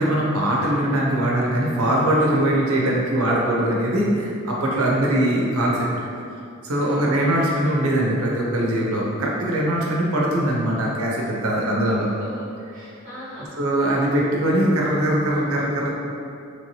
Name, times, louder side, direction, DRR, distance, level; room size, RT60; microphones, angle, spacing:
voice 1, 0.0-6.1 6.6-12.1 13.6-15.9, right 1 dB, 80° right, -3 dB, 0.7 m, -21 dB
voice 2, 4.8-5.3 6.8-7.6 11.7-13.5 13.8-14.1, equal, 40° right, -11 dB, 0.7 m, -40 dB
3.1 x 3.1 x 2.7 m, 2.5 s
head